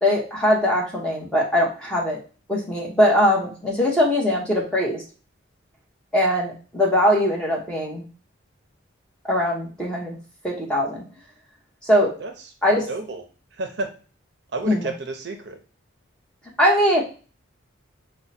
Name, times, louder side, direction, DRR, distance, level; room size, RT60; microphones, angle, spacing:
voice 1, 0.0-2.2 2.5-5.0 6.1-8.0 9.2-10.2 10.4-11.0 11.8-12.2 12.6-12.9 14.7-14.9 16.6-17.0, left 1 dB, 5° left, -2 dB, 0.9 m, -21 dB
voice 2, 12.9-13.2 13.5-13.9 14.5-15.6, right 2 dB, 55° right, 6 dB, 0.6 m, -30 dB
4.6 x 2.2 x 4.0 m, 0.36 s
head